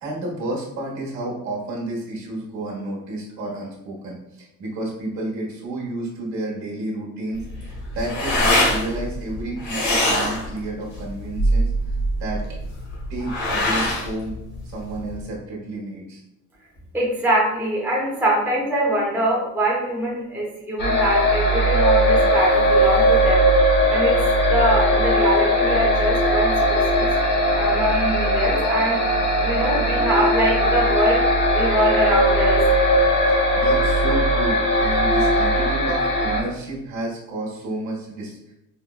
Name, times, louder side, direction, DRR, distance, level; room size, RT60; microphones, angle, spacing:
voice 1, 0.0-12.4 13.1-14.3 14.6-16.2 33.3-38.4, right 2 dB, 65° right, -4 dB, 1.1 m, -31 dB
sound 1, 7.3-15.2, equal, 65° left, 0.9 m, -23 dB
voice 2, 16.9-23.5 23.9-24.2 24.5-27.1 27.5-29.0 29.4-31.2 31.5-32.6, right 1 dB, 5° right, -5 dB, 0.6 m, -23 dB
sound 2, 20.8-36.4, equal, 35° left, 0.6 m, -19 dB
4.7 x 2.1 x 2.3 m, 0.87 s
cardioid pair, 175°, 31 cm